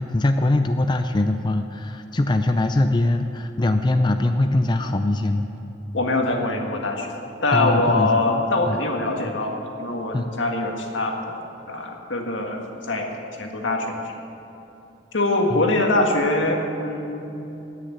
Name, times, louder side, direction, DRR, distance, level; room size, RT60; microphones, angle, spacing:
voice 1, 0.0-5.5 7.5-8.1 8.7-8.8 10.1-10.3 15.5-15.6, left 2 dB, 25° left, 7 dB, 0.4 m, -22 dB
voice 2, 5.9-7.1 7.4-11.4 11.7-12.6 12.9-13.1 13.4-14.0 15.1-17.5, left 2 dB, 85° left, 2 dB, 1.8 m, -23 dB
18.0 x 6.5 x 8.0 m, 3.0 s
head